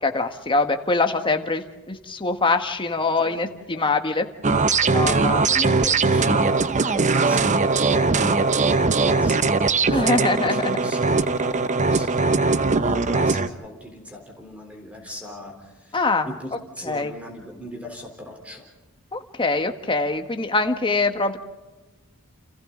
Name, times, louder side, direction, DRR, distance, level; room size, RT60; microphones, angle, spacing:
voice 1, 0.0-4.3 4.9-5.5 9.9-10.8 15.9-16.3 16.8-17.1 19.1-21.4, left 3 dB, 25° left, 6 dB, 1.6 m, -23 dB
sound 1, 4.4-13.5, right 4 dB, 35° right, 0.8 m, -20 dB
voice 2, 5.3-16.0 16.3-18.7, left 1 dB, 5° right, 2 dB, 3.7 m, -38 dB
30.0 x 28.5 x 3.9 m, 1.2 s
head